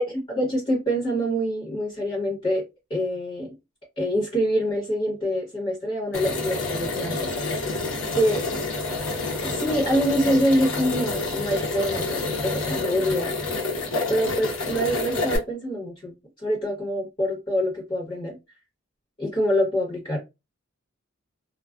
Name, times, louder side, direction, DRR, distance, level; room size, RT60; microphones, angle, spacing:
voice 1, 0.0-2.6 2.9-3.5 4.0-7.3 8.1-8.4 9.4-13.3 14.1-16.1 16.4-18.4 19.2-20.2, equal, 25° left, 1.1 m, -25 dB
sound 1, 6.1-15.4, left 3 dB, 80° left, 0.8 m, -28 dB
2.3 x 2.2 x 2.4 m
head